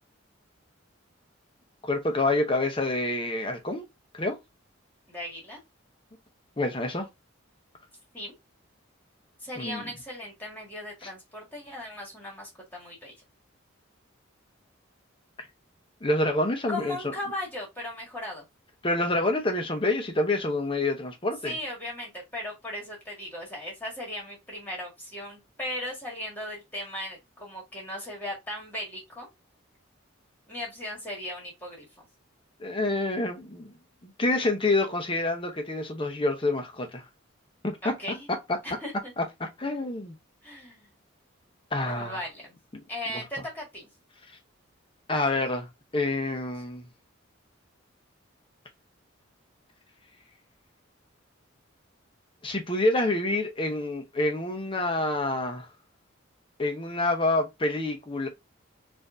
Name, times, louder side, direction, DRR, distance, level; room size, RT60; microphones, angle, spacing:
voice 1, 1.8-3.8 4.1-4.4 6.6-7.1 9.6-9.9 16.0-17.1 18.8-21.5 32.6-33.7 34.0-37.0 37.6-37.9 39.2-40.1 41.7-42.2 45.1-45.7 45.9-46.8 52.4-55.7 56.6-58.3, left 2 dB, 25° left, 0.7 m, -27 dB
voice 2, 5.1-5.6 8.1-8.3 9.4-13.1 16.7-18.5 21.4-29.3 30.5-31.9 37.8-38.3 38.6-39.1 40.4-40.9 41.9-42.6 42.9-43.9, left 1 dB, 10° left, 1.7 m, -37 dB
4.2 x 2.6 x 2.5 m
head